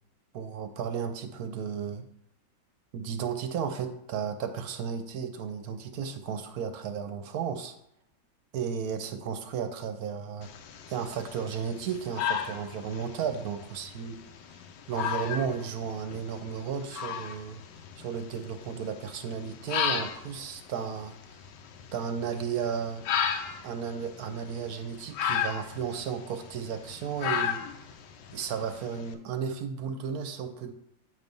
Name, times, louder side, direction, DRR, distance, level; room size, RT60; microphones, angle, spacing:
voice 1, 0.3-2.0 2.9-7.8 8.5-10.5 10.9-14.1 14.9-17.6 18.0-21.1 21.9-23.0 23.6-27.6 28.3-30.7, right 7 dB, 65° right, 8 dB, 1.0 m, -34 dB
sound 1, 10.4-29.1, left 8 dB, 75° left, 1.2 m, -35 dB
8.1 x 3.3 x 5.3 m, 0.78 s
omnidirectional pair, 2.1 m